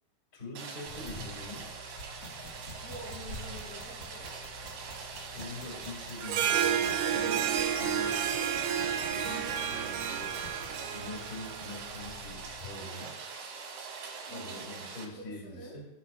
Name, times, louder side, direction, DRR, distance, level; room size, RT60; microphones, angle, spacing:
voice 1, 0.3-1.7 5.3-7.5 7.7-8.2 8.8-10.4 10.9-13.2 14.3-15.9, left 2 dB, 20° left, -3 dB, 1.5 m, -44 dB
Rain, 0.5-15.1, right 5 dB, 65° right, 2.5 m, -43 dB
sound 1, 0.9-12.8, left 1 dB, 60° left, 1.2 m, -48 dB
voice 2, 2.8-4.3 14.2-14.6 15.2-15.8, equal, 80° left, -2 dB, 4.5 m, -47 dB
Harp, 6.2-11.9, right 8 dB, 85° right, 2.6 m, -31 dB
15.0 x 6.2 x 2.5 m, 0.92 s
omnidirectional pair, 4.8 m